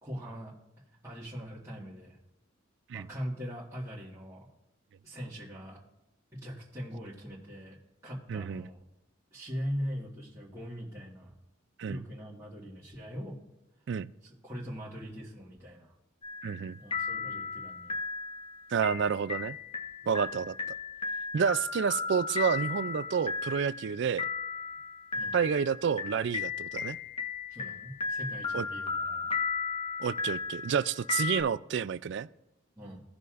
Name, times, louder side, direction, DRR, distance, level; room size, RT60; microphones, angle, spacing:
voice 1, 0.0-0.5 1.0-2.2 2.9-4.5 5.0-5.8 6.3-7.8 8.0-8.8 9.3-11.3 11.9-13.4 14.2-16.0 16.8-17.9 20.0-20.4 25.1-25.3 27.5-29.3 32.8-33.0, equal, 15° right, 1.8 m, -41 dB
voice 2, 8.3-8.6 11.8-12.0 13.9-14.1 16.4-16.8 18.7-19.6 20.1-20.5 21.3-24.3 25.3-27.0 28.5-28.7 30.0-32.3, right 6 dB, 60° right, 0.3 m, -29 dB
sound 1, 16.2-16.7 16.9-31.4, left 5 dB, 25° left, 1.2 m, -35 dB
17.0 x 6.7 x 2.5 m
head